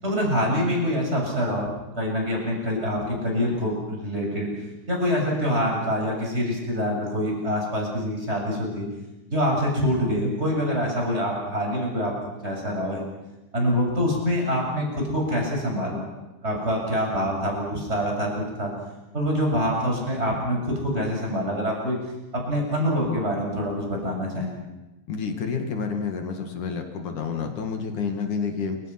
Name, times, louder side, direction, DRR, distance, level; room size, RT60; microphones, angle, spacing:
voice 1, 0.0-1.7 2.0-4.5 4.9-8.8 9.3-13.0 13.5-16.0 16.4-18.7 19.1-22.0 22.3-24.5, equal, 15° right, -1 dB, 7.5 m, -25 dB
voice 2, 25.1-28.8, left 5 dB, 60° left, 5 dB, 3.6 m, -29 dB
28.5 x 25.0 x 6.1 m, 1.0 s
omnidirectional pair, 4.0 m